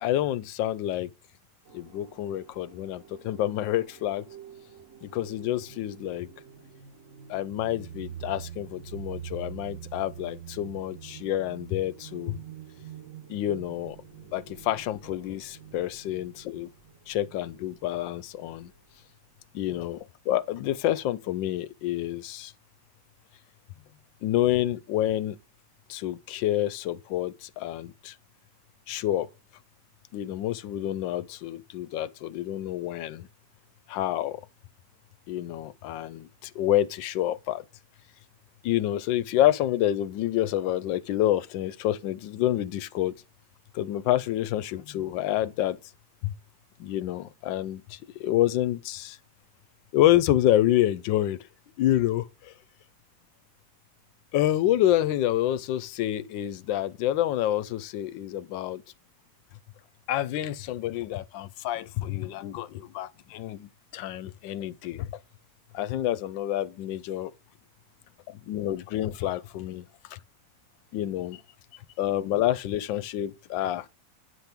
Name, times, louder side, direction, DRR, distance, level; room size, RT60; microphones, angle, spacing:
voice 1, 0.0-1.1 1.7-4.3 5.0-6.3 7.3-12.4 13.3-14.0 14.3-16.7 17.1-18.7 19.5-22.5 24.2-25.4 25.9-28.1 28.9-29.3 30.1-33.3 33.9-34.4 35.3-37.6 38.6-43.1 43.7-45.8 46.2-46.3 46.8-49.2 49.9-51.4 51.8-52.5 54.3-58.8 60.1-65.1 65.7-67.3 68.3-69.8 70.1-70.2 70.9-71.4 72.0-73.9, left 13 dB, 85° left, 1.3 m, -28 dB
sound 1, 1.7-18.8, right 9 dB, 50° right, 1.3 m, -46 dB
9.3 x 5.9 x 3.5 m
omnidirectional pair, 2.0 m